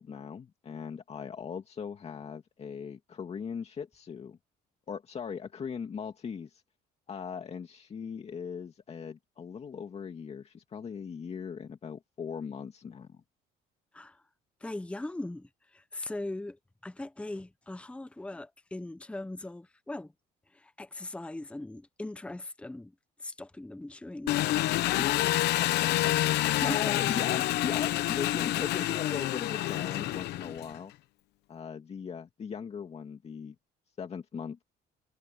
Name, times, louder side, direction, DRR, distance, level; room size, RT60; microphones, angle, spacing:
voice 1, 0.0-4.4 4.9-6.6 7.1-13.2 25.6-30.9 31.5-33.5 34.0-34.6, left 6 dB, 40° left, 2.3 m, -39 dB
voice 2, 14.6-20.1 20.5-22.9 23.2-25.1 26.4-26.9, left 2 dB, 5° left, 0.9 m, -40 dB
Engine, 24.3-30.8, left 15 dB, 80° left, 0.9 m, -28 dB
cardioid pair, 110°, 17 cm